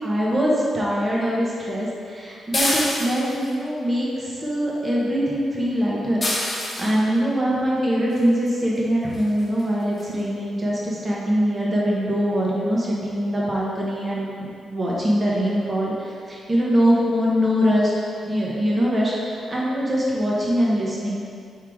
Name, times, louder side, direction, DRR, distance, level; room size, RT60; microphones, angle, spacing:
voice 1, 0.0-17.9 18.2-21.2, equal, 20° right, -5 dB, 1.0 m, -23 dB
sound 1, 2.5-3.5 6.2-7.0 8.5-8.6 9.1-9.3 9.6-9.7 10.0-10.1, left 1 dB, 20° left, 0.7 m, -26 dB
5.6 x 4.7 x 3.6 m, 2.4 s
wide cardioid pair, 180°, 0 cm